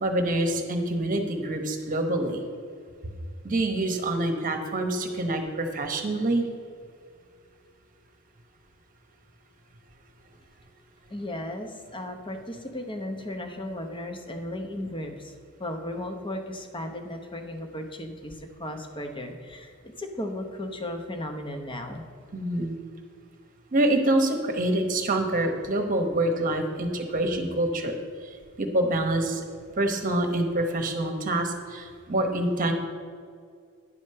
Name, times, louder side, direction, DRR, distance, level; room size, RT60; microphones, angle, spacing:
voice 1, 0.0-2.4 3.4-6.4 22.3-22.7 23.7-27.9 28.6-29.4 29.8-32.7, right 1 dB, 40° right, 5 dB, 1.0 m, -26 dB
voice 2, 11.1-15.3 15.6-22.0, left 1 dB, 25° left, 4 dB, 0.9 m, -35 dB
9.8 x 5.1 x 6.6 m, 2.2 s
head